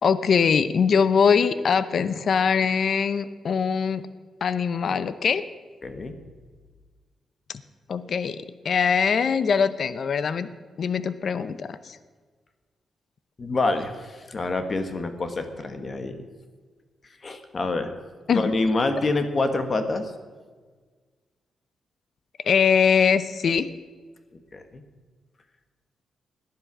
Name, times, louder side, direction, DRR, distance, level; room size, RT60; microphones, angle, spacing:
voice 1, 0.0-4.0 4.4-5.4 7.9-10.5 10.8-12.0 18.3-18.6 22.4-23.7, left 6 dB, 50° left, 14 dB, 0.6 m, -22 dB
voice 2, 5.8-6.1 13.4-16.2 17.2-17.9 18.3-20.1 24.5-24.8, left 2 dB, 35° left, 8 dB, 1.4 m, -26 dB
18.0 x 10.5 x 6.1 m, 1.5 s
wide cardioid pair, 135°, 0 cm